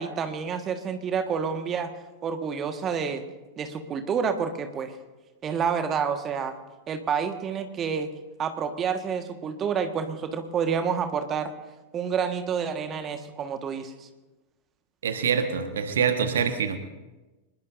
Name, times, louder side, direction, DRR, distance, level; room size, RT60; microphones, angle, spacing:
voice 1, 0.0-1.9 2.2-3.2 3.6-4.9 5.4-6.5 6.9-8.1 8.4-11.5 11.9-14.1, right 6 dB, 25° right, 7 dB, 1.5 m, -28 dB
voice 2, 15.0-16.8, right 7 dB, 65° right, 8 dB, 1.4 m, -25 dB
25.5 x 21.0 x 2.6 m, 1.1 s
figure-of-eight pair, 90°, 0 cm